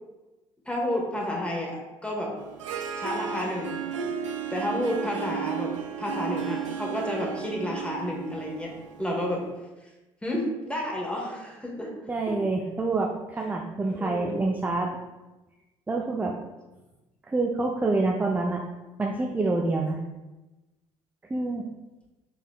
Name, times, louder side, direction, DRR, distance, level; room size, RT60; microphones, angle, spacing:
voice 1, 0.6-2.3 3.0-3.8 4.5-5.7 6.0-8.7 9.0-9.4 10.2-11.9 12.3-12.4 13.8-14.4, left 1 dB, 5° left, -2 dB, 1.2 m, -30 dB
Harp, 2.4-9.5, right 8 dB, 80° right, 0.4 m, -34 dB
voice 2, 12.1-14.9 15.9-16.3 17.3-18.6 19.0-20.0 21.3-21.7, right 3 dB, 10° right, 0 dB, 0.4 m, -27 dB
5.3 x 3.5 x 2.2 m, 1.1 s
figure-of-eight pair, 55°, 16 cm